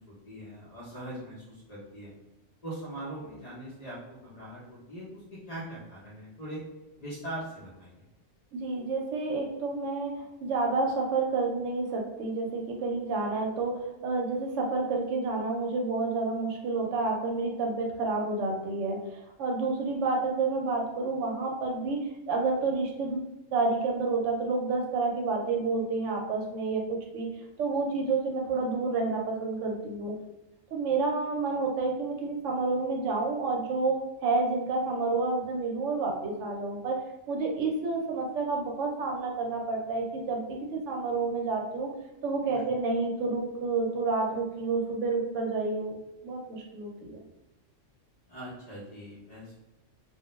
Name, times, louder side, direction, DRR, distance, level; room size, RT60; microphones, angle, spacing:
voice 1, 0.1-2.1 2.6-6.6 7.0-8.1 42.5-42.7 48.3-49.5, right 1 dB, 40° left, -7 dB, 0.7 m, -41 dB
voice 2, 8.5-27.3 27.6-30.2 30.7-37.0 37.3-41.9 42.2-47.2, right 3 dB, 75° right, 1 dB, 0.9 m, -29 dB
2.4 x 2.1 x 3.0 m, 0.99 s
omnidirectional pair, 1.3 m